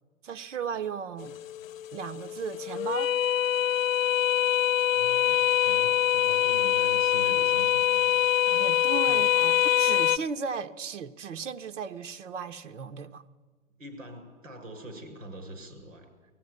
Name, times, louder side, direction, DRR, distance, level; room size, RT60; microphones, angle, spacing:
voice 1, 0.2-1.3 1.9-3.1 8.5-13.2, right 6 dB, 70° right, 1.0 m, -36 dB
sound 1, 1.2-10.2, left 11 dB, 80° left, 0.7 m, -24 dB
voice 2, 4.9-8.2 9.1-9.2 9.8-9.9 13.8-16.1, right 1 dB, 85° right, 6.7 m, -44 dB
18.0 x 15.0 x 9.6 m
hypercardioid pair, 150°, 39 cm